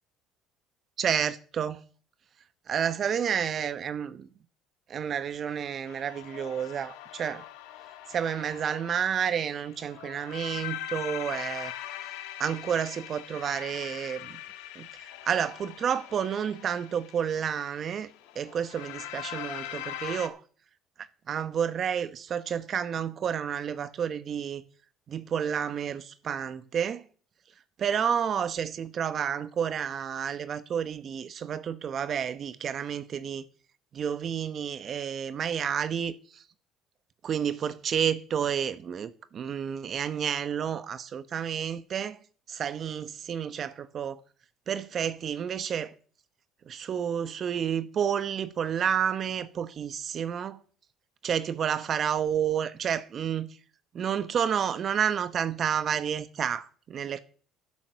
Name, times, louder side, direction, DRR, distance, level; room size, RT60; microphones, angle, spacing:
voice 1, 1.0-1.8 2.7-4.3 4.9-7.4 8.1-11.7 12.4-14.4 14.8-18.1 18.3-20.4 21.3-24.6 25.1-27.0 27.8-33.4 33.9-36.4 37.2-42.2 42.5-44.2 44.7-45.9 46.7-50.6 51.2-53.5 53.9-57.2, right 8 dB, 50° right, 1.1 m, -30 dB
sound 1, 5.9-20.3, left 12 dB, 80° left, 1.3 m, -42 dB
12.0 x 7.3 x 6.9 m
hypercardioid pair, 70°, 0 cm